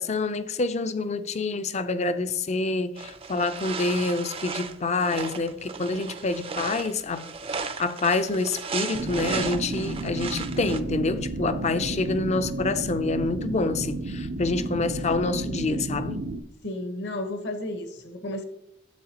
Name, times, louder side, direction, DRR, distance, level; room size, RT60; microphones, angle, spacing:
voice 1, 0.0-7.3 7.6-16.2, left 3 dB, 35° left, 0.5 m, -27 dB
sound 1, 3.0-10.8, right 5 dB, 30° right, 0.5 m, -35 dB
sound 2, 8.9-16.4, right 2 dB, 80° right, 0.8 m, -32 dB
voice 2, 16.6-18.4, left 1 dB, 65° left, 1.2 m, -33 dB
11.5 x 7.9 x 2.9 m
head